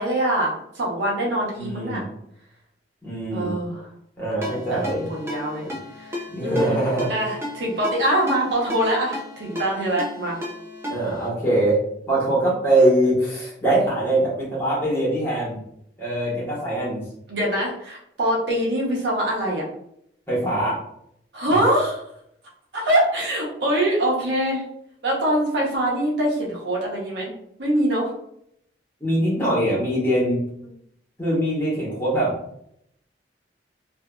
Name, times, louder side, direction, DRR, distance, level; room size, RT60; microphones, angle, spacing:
voice 1, 0.0-2.1 3.3-3.8 4.5-5.7 6.0-6.1 6.4-6.8 7.1-10.4 17.3-19.6 21.3-22.0 22.7-24.6 25.0-27.3 27.6-28.1 30.6-30.7, right 1 dB, 75° right, -4 dB, 0.9 m, -23 dB
voice 2, 1.6-2.1 3.0-3.5 4.2-5.0 5.6-5.8 6.3-7.1 10.9-11.8 12.1-15.6 16.0-17.0 20.3-20.8 21.5-21.6 29.0-30.4 31.2-32.3, right 1 dB, 15° left, -8 dB, 1.2 m, -22 dB
Ringtone, 4.4-11.3, left 1 dB, 15° right, 0.5 m, -35 dB
2.6 x 2.6 x 2.3 m, 0.73 s
head